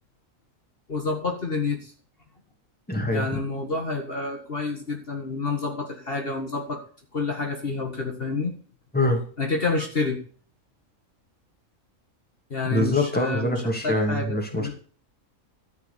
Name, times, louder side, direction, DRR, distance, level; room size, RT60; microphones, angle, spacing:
voice 1, 0.9-1.9 3.1-6.8 7.1-8.5 9.4-10.2 12.5-14.7, left 3 dB, 45° left, 1 dB, 2.0 m, -29 dB
voice 2, 2.9-3.3 8.9-9.2 12.7-14.7, left 1 dB, 5° left, 2 dB, 2.4 m, -24 dB
13.5 x 4.8 x 8.6 m, 0.43 s
omnidirectional pair, 1.4 m